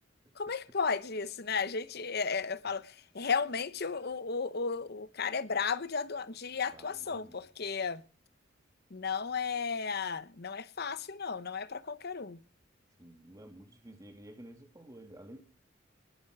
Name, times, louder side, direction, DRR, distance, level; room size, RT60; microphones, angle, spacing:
voice 1, 0.4-8.0 8.9-12.4, left 5 dB, 55° left, 0.9 m, -34 dB
voice 2, 6.7-7.4 13.0-15.4, right 1 dB, 15° right, 1.8 m, -52 dB
20.0 x 10.5 x 4.9 m
head